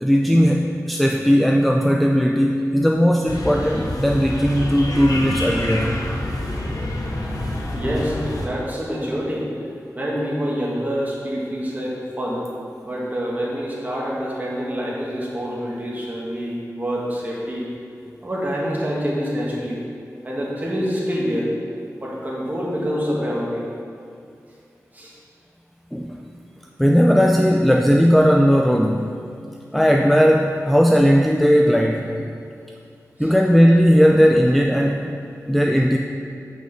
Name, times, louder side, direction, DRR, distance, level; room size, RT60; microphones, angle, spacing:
voice 1, 0.0-5.9 25.9-26.2 26.8-29.2 29.7-32.3 33.2-35.0 35.5-36.0, equal, ahead, 1 dB, 0.4 m, -17 dB
sound 1, 3.3-8.5, left 1 dB, 90° left, 1.0 m, -27 dB
voice 2, 7.7-8.2 8.4-9.5 10.0-12.4 12.8-17.7 18.2-19.8 20.2-21.5 22.0-23.6 24.9-25.1 33.2-33.3, equal, 30° right, -5 dB, 1.8 m, -26 dB
6.1 x 5.6 x 6.1 m, 2.4 s
wide cardioid pair, 90°, 6 cm